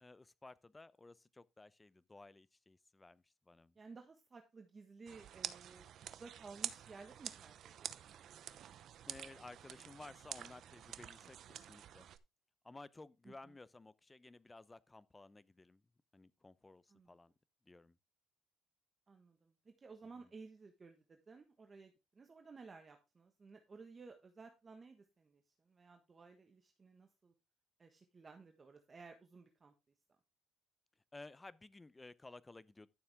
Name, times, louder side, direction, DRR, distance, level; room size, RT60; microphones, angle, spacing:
voice 1, 0.0-3.8 9.0-12.1 12.6-15.8 16.1-17.3 17.7-18.0 20.2-20.3 31.1-32.9, left 2 dB, 15° left, 0.7 m, -56 dB
voice 2, 3.7-8.5 13.2-13.3 16.9-17.1 19.1-27.3 27.8-29.7, right 4 dB, 30° right, 1.4 m, -56 dB
sound 1, 5.1-12.2, right 10 dB, 60° right, 0.8 m, -48 dB
12.5 x 7.0 x 3.5 m
cardioid pair, 115°, 0 cm